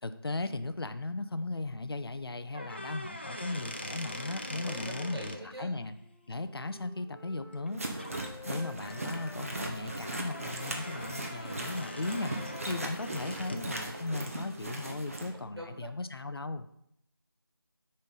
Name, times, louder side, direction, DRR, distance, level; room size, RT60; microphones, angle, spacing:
voice 1, 0.0-5.9 6.3-7.8 8.5-12.3 12.7-16.7, left 2 dB, 75° left, 10 dB, 0.5 m, -37 dB
sound 1, 2.5-5.4 7.5-7.7 8.0-8.3 8.8-13.7, left 1 dB, 25° left, 0.4 m, -43 dB
voice 2, 4.6-5.8 15.3-15.9, right 1 dB, 85° right, 1 dB, 1.5 m, -44 dB
Wind instrument woodwind instrument, 5.9-10.3 10.6-15.1, left 1 dB, 5° left, 2.0 m, -51 dB
sound 2, 7.7-15.3, right 2 dB, 35° right, 0.8 m, -39 dB
6.6 x 3.3 x 5.4 m, 0.73 s
figure-of-eight pair, 170°, 13 cm